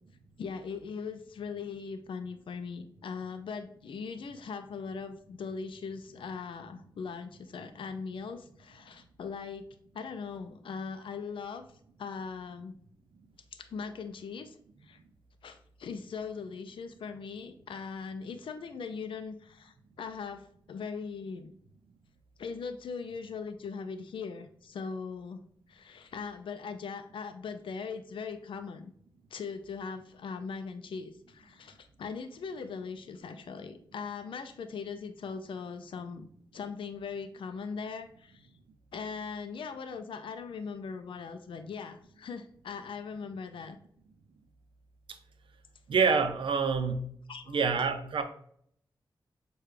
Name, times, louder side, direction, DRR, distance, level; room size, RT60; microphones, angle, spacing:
voice 1, 0.4-9.7 9.9-11.7 12.0-12.7 13.5-14.6 14.8-15.0 15.4-21.5 22.4-25.4 25.7-28.9 29.3-36.3 36.5-38.5 38.9-43.8 47.3-47.6, left 5 dB, 80° left, 8 dB, 0.4 m, -40 dB
voice 2, 45.9-47.1 47.5-48.2, right 5 dB, 80° right, 8 dB, 0.5 m, -27 dB
6.6 x 2.3 x 3.2 m, 0.66 s
wide cardioid pair, 120°, 9 cm